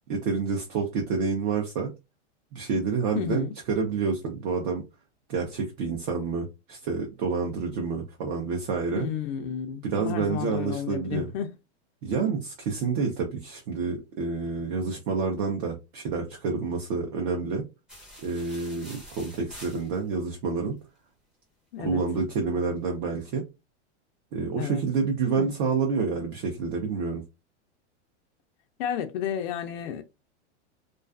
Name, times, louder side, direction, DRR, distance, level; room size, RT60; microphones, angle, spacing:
voice 1, 0.1-1.9 2.5-4.8 5.3-9.1 9.8-11.3 12.0-17.6 18.2-20.7 21.8-23.4 24.3-27.2, right 5 dB, 45° right, 0.6 m, -28 dB
voice 2, 3.1-3.5 9.0-11.5 21.7-22.0 24.6-24.8 25.4-25.5 28.8-30.0, left 9 dB, 55° left, 0.4 m, -32 dB
sound 1, 17.9-20.3, equal, ahead, 0.5 m, -47 dB
2.3 x 2.3 x 2.4 m
supercardioid pair, 150°, 35 cm